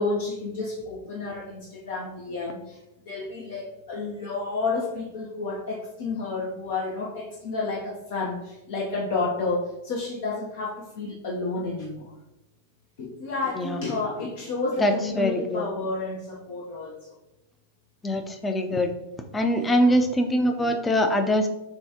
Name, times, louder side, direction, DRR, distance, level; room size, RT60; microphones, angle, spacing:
voice 1, 0.0-2.8 3.1-12.1 13.0-17.1 19.6-19.9, left 3 dB, 60° left, -2 dB, 0.7 m, -31 dB
voice 2, 14.8-15.6 18.0-18.9 19.3-21.5, equal, 15° left, 6 dB, 0.5 m, -23 dB
6.8 x 2.3 x 2.8 m, 0.95 s
hypercardioid pair, 100°, 0 cm